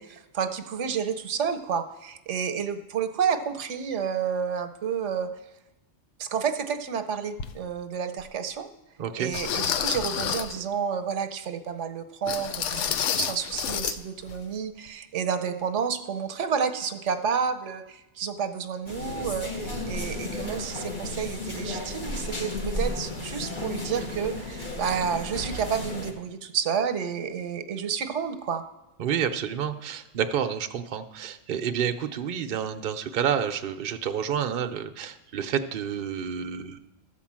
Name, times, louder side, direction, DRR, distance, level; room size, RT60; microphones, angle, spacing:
voice 1, 0.0-5.3 6.2-8.7 9.2-28.6, right 7 dB, 80° right, 9 dB, 1.1 m, -30 dB
sound 1, 7.4-7.5 8.2-8.3 9.3-10.6 12.3-14.0 14.2-14.4 14.9-15.0, left 8 dB, 80° left, 0.9 m, -29 dB
voice 2, 9.0-9.3 29.0-36.8, right 8 dB, 55° right, 6 dB, 0.7 m, -29 dB
sound 2, 18.9-26.1, left 1 dB, 45° left, 1.4 m, -33 dB
13.5 x 4.5 x 7.4 m, 0.94 s
omnidirectional pair, 1.2 m